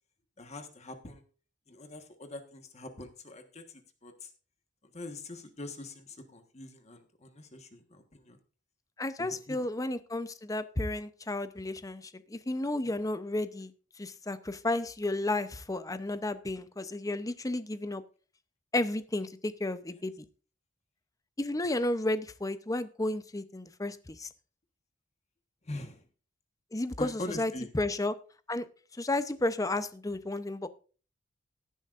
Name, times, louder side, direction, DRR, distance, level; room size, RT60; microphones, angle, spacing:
voice 1, 0.4-1.2 1.7-4.3 4.9-8.4 9.2-9.6 25.6-26.0 27.0-27.7, left 2 dB, 35° left, 6 dB, 1.4 m, -43 dB
voice 2, 9.0-13.7 14.0-18.0 18.7-20.3 21.4-24.3 26.7-28.1 28.5-28.7 29.0-30.7, left 2 dB, 20° left, 12 dB, 0.7 m, -32 dB
17.0 x 10.0 x 2.5 m, 0.37 s
head